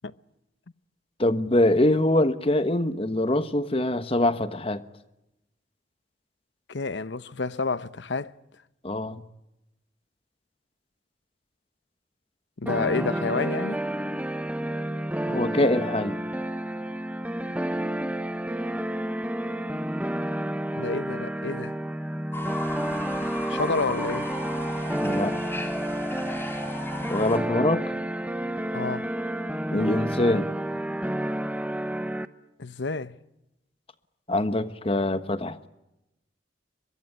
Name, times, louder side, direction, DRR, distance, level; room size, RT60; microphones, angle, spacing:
voice 1, 1.2-4.8 8.8-9.2 15.3-16.2 25.0-25.5 27.1-27.8 29.7-30.5 34.3-35.7, left 1 dB, 30° left, 1.3 m, -24 dB
voice 2, 6.7-8.3 12.6-13.8 20.8-21.7 23.5-24.3 28.7-29.1 32.6-33.1, left 3 dB, 70° left, 0.9 m, -29 dB
sound 1, 12.7-32.3, right 1 dB, 10° right, 0.9 m, -30 dB
Fowl / Bird, 22.3-27.4, left 1 dB, 15° left, 3.7 m, -35 dB
23.5 x 22.5 x 9.8 m
head